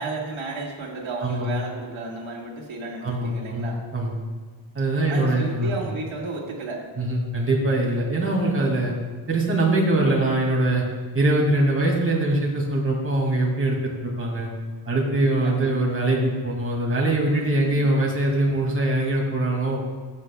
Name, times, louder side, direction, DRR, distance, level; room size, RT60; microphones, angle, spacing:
voice 1, 0.0-3.8 5.1-6.9 15.3-15.7 17.4-17.8, right 3 dB, 80° right, -3 dB, 2.1 m, -33 dB
voice 2, 1.2-1.5 3.0-4.1 4.7-5.7 7.0-8.9 9.3-10.8 11.1-14.5 14.9-19.8, right 1 dB, 30° right, -2 dB, 2.3 m, -22 dB
14.5 x 8.3 x 2.3 m, 1.4 s
wide cardioid pair, 125°, 47 cm